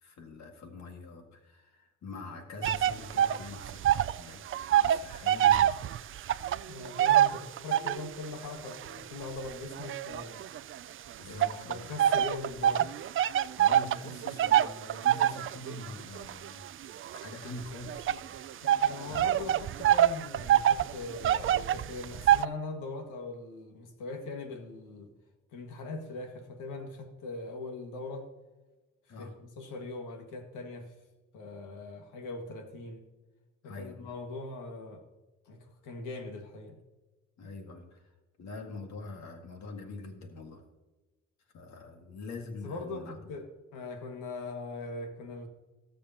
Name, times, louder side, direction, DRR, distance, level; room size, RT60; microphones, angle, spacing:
voice 1, 0.0-4.4 4.7-6.1 11.2-11.9 13.6-16.6 17.2-19.2 29.1-29.3 33.6-34.1 37.4-38.0 38.4-40.6 41.5-43.2, left 3 dB, 65° left, 3 dB, 2.0 m, -44 dB
sound 1, 2.6-4.2 4.5-8.1 8.7-10.8 11.4-22.5, right 11 dB, 45° right, 0.4 m, -26 dB
voice 2, 6.7-10.5 11.3-12.9 18.6-25.1 25.5-28.3 29.2-30.9 31.3-33.1 33.6-35.0 35.5-36.8 42.6-43.5 43.7-45.5, left 3 dB, 90° left, 4 dB, 1.9 m, -41 dB
19.5 x 6.8 x 2.9 m, 1.2 s
cardioid pair, 90°, 30 cm